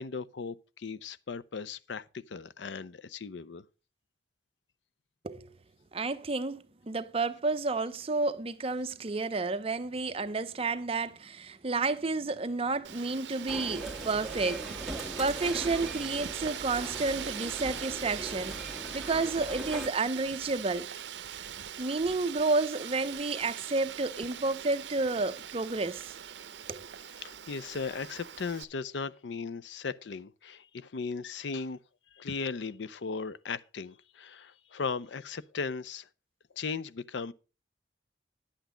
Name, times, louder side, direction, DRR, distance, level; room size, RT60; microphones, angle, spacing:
voice 1, 0.0-3.6 27.2-31.8 32.1-36.1 36.6-37.3, left 4 dB, 80° left, 0.5 m, -37 dB
voice 2, 5.9-18.7 18.9-20.9 21.8-26.1 26.7-26.9, right 3 dB, 35° right, 0.6 m, -31 dB
Wind, 12.8-28.6, right 10 dB, 75° right, 0.6 m, -42 dB
sound 1, 13.5-19.9, right 1 dB, ahead, 1.6 m, -40 dB
10.0 x 8.2 x 5.0 m
head